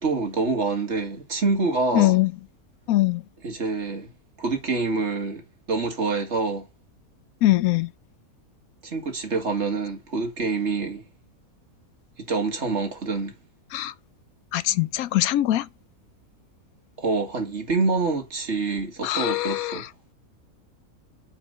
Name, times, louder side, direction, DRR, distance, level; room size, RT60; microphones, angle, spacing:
voice 1, 0.0-2.2 3.4-4.1 4.4-5.4 5.7-6.7 8.8-11.0 12.3-13.3 17.0-19.8, right 3 dB, 50° right, 2.1 m, -26 dB
voice 2, 1.9-2.3 2.9-3.2 7.4-7.9 13.7-13.9 14.5-15.7 19.0-19.9, left 15 dB, 75° left, 1.0 m, -22 dB
7.1 x 4.7 x 5.4 m
omnidirectional pair, 1.6 m